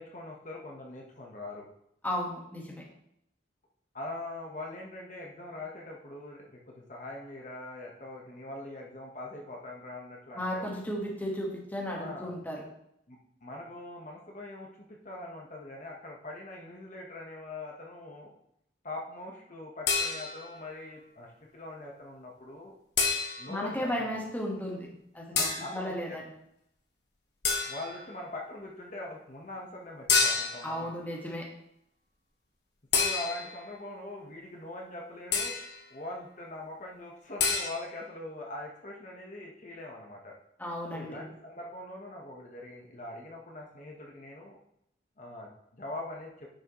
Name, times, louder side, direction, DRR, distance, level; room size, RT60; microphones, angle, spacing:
voice 1, 0.0-1.7 3.9-10.7 12.0-12.4 13.1-18.3 18.8-22.7 23.4-24.2 25.3-26.2 27.7-30.9 32.9-35.6 35.9-40.3 40.9-44.6 45.2-46.5, left 2 dB, 40° left, -1 dB, 1.2 m, -42 dB
voice 2, 2.0-2.8 10.3-12.6 23.5-25.4 25.7-26.3 30.6-31.5 40.6-41.2, equal, 10° left, -2 dB, 1.4 m, -34 dB
sound 1, 19.9-20.6 23.0-23.6 25.4-25.7 27.4-28.0 30.1-30.7 32.9-33.6 35.3-35.8 37.4-37.7, left 5 dB, 60° left, 1.4 m, -28 dB
9.8 x 5.9 x 3.1 m, 0.76 s
head